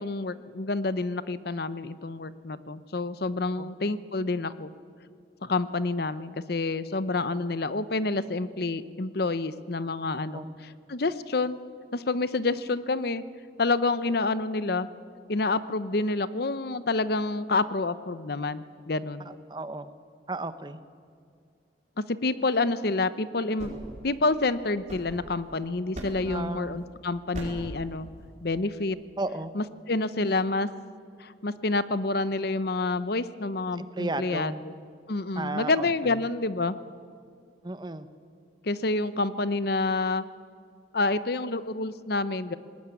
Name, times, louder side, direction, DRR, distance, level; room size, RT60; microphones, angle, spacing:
voice 1, 0.0-4.7 5.4-10.5 10.9-11.6 11.9-13.2 13.6-14.9 15.3-19.3 22.1-23.7 24.0-28.1 28.4-29.0 29.5-30.7 31.2-34.7 35.1-36.8 38.6-40.2 40.9-42.6, left 3 dB, 55° left, 15 dB, 0.7 m, -28 dB
voice 2, 19.2-19.9 20.3-20.8 26.3-26.8 29.2-29.5 33.8-34.6 35.3-36.2 37.6-38.1, right 2 dB, 20° right, 12 dB, 0.8 m, -34 dB
sound 1, 23.4-25.5 25.9-26.4 27.3-27.8, equal, 40° right, 5.2 m, -40 dB
20.0 x 19.0 x 9.7 m, 2.2 s
head